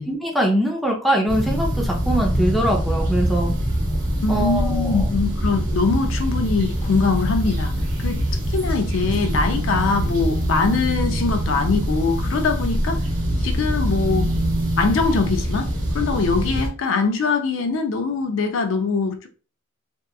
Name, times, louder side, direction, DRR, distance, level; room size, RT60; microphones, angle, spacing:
voice 1, 0.1-3.5 4.3-5.0, right 1 dB, ahead, 0.4 m, -22 dB
sound 1, 1.3-16.7, equal, 40° right, 0.8 m, -24 dB
voice 2, 4.2-7.7 8.0-8.2 8.5-13.0 13.4-14.3 14.8-19.3, left 4 dB, 70° left, 0.4 m, -22 dB
2.8 x 2.3 x 2.3 m
head